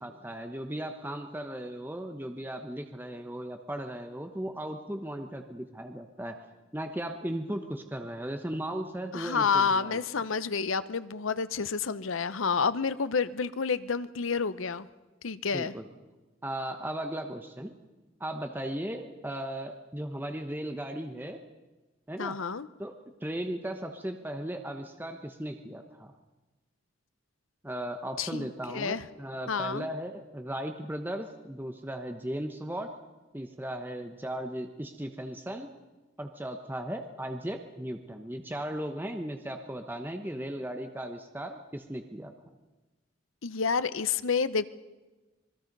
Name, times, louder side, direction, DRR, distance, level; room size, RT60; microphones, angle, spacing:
voice 1, 0.0-6.4 6.7-10.0 15.5-15.9 16.4-17.7 18.2-21.4 22.1-22.4 22.8-22.9 23.2-26.1 27.6-33.0 33.3-35.7 36.2-42.3, right 1 dB, 10° right, 5 dB, 1.1 m, -36 dB
voice 2, 9.1-14.9 15.2-15.7 22.2-22.7 28.2-29.0 29.5-29.9 43.4-44.7, left 5 dB, 80° left, 14 dB, 0.8 m, -29 dB
26.5 x 21.0 x 5.4 m, 1.2 s
head